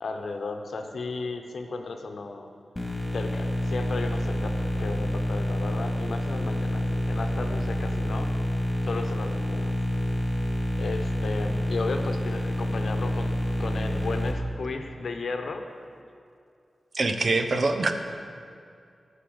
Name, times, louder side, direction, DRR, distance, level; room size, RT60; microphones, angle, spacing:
voice 1, 0.0-2.5 3.1-8.3 8.9-9.7 10.8-13.3 13.6-15.6, left 3 dB, 75° left, 5 dB, 0.9 m, -34 dB
sound 1, 2.8-14.3, left 1 dB, 15° left, 2.3 m, -28 dB
voice 2, 16.9-17.9, right 3 dB, 60° right, 7 dB, 0.8 m, -24 dB
10.0 x 5.5 x 7.8 m, 2.4 s
cardioid pair, 45°, 0 cm